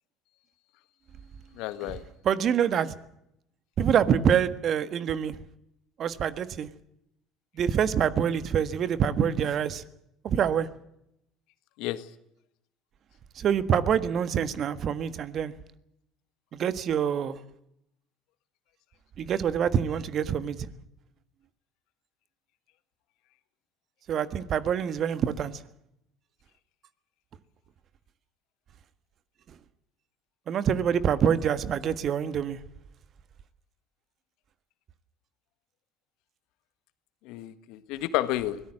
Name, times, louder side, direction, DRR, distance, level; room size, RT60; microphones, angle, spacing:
voice 1, 1.6-2.0 11.8-12.0 37.2-38.6, left 15 dB, 65° left, 1.5 m, -31 dB
voice 2, 2.2-2.9 3.8-5.4 6.0-6.7 7.6-9.8 10.2-10.7 13.3-15.5 16.5-17.4 19.2-20.7 24.1-25.6 30.5-32.6, right 8 dB, 50° right, 1.5 m, -26 dB
24.0 x 17.5 x 7.8 m
hypercardioid pair, 65°, 0 cm